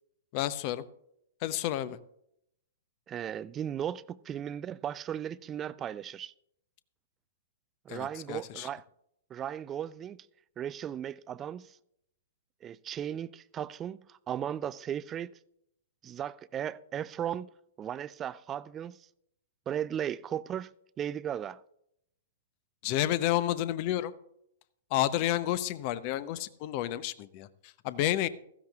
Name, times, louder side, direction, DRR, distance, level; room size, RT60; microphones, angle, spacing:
voice 1, 0.3-0.8 1.4-2.0 7.9-8.7 22.8-24.1 24.9-27.5 27.8-28.3, left 13 dB, 40° left, 0.7 m, -30 dB
voice 2, 3.1-6.3 7.9-8.8 9.3-10.3 10.6-11.7 12.6-15.3 16.0-17.5 17.8-19.0 19.7-21.6, right 9 dB, 25° right, 0.3 m, -36 dB
16.0 x 14.5 x 2.4 m
figure-of-eight pair, 110°, 0 cm